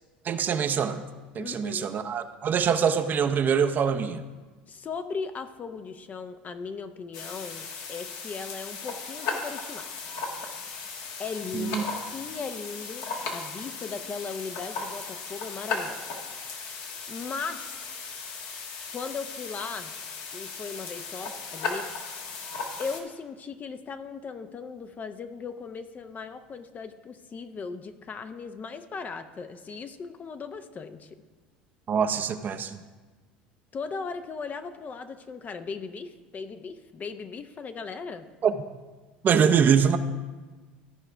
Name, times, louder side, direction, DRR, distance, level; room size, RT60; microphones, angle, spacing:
voice 1, 0.2-1.0 1.3-4.2 11.5-11.8 31.9-32.8 38.4-38.5 39.2-40.0, right 7 dB, 40° right, 8 dB, 0.6 m, -24 dB
voice 2, 1.4-2.0 4.7-9.8 11.2-13.1 13.3-16.1 16.5-16.8 17.1-17.8 18.9-19.9 20.3-21.9 22.8-31.2 33.7-38.3, left 5 dB, 35° left, 9 dB, 0.6 m, -38 dB
sound 1, 7.1-23.0, left 4 dB, 65° left, 1.4 m, -36 dB
13.5 x 4.8 x 4.6 m, 1.3 s
hypercardioid pair, 80°, 5 cm